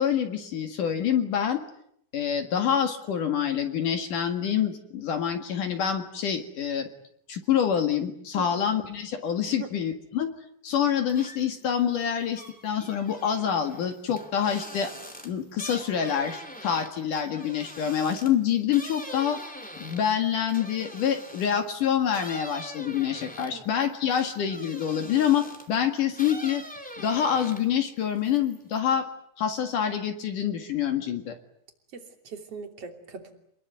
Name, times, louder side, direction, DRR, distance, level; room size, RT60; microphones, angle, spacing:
voice 1, 0.0-1.6 2.1-6.9 7.3-10.3 10.6-14.9 15.2-19.4 19.8-26.6 27.0-29.1 29.4-31.4, left 8 dB, 60° left, 6 dB, 3.1 m, -26 dB
sound 1, 11.1-11.6 12.0-21.7 22.1-25.7 26.1-27.8 28.1-28.8, equal, 5° left, 2.1 m, -43 dB
voice 2, 31.9-33.3, right 4 dB, 40° right, 5 dB, 3.7 m, -40 dB
27.5 x 21.0 x 9.5 m, 0.72 s
omnidirectional pair, 4.6 m